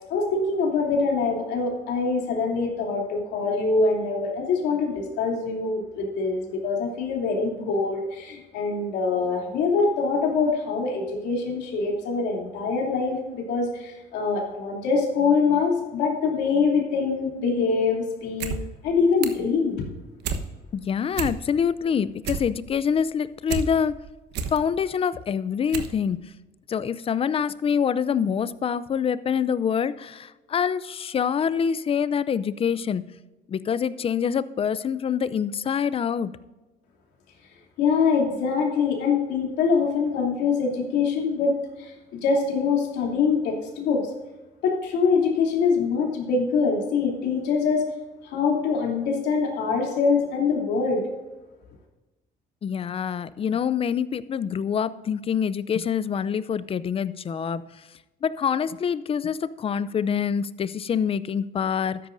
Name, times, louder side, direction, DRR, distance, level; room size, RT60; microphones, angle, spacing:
voice 1, 0.1-18.6 18.8-19.9 37.8-41.9 42.2-44.1 44.6-47.8 48.2-51.0, left 4 dB, 85° left, 0 dB, 3.0 m, -24 dB
sound 1, 18.2-18.6 18.9-19.5 19.9-20.4 20.8-20.9 21.1-21.7 22.0-23.7 24.1-24.6 25.1-25.2 25.7-26.0 26.3-26.4, right 5 dB, 80° right, 1.1 m, -30 dB
voice 2, 20.7-24.0 24.5-26.2 26.7-33.0 33.5-36.3 52.6-57.6 58.2-62.0, left 7 dB, 35° left, 16 dB, 0.5 m, -25 dB
13.0 x 10.5 x 2.6 m, 1.1 s
cardioid pair, 110°, 17 cm